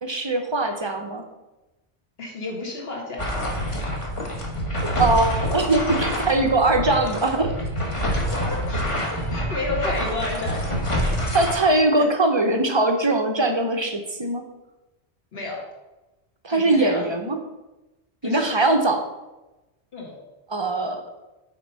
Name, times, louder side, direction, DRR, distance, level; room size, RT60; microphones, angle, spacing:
voice 1, 0.0-1.2 4.9-7.6 11.3-14.4 16.4-17.4 18.2-19.0 20.5-21.0, right 2 dB, 30° right, 5 dB, 0.6 m, -21 dB
voice 2, 2.2-3.3 8.3-10.7 12.0-12.1 15.3-15.6 16.5-17.1 18.2-18.5 19.9-20.1, left 2 dB, 60° left, -2 dB, 1.8 m, -31 dB
sound 1, 3.2-11.5, equal, 30° left, 1.0 m, -26 dB
5.8 x 4.4 x 5.5 m, 1.0 s
omnidirectional pair, 1.2 m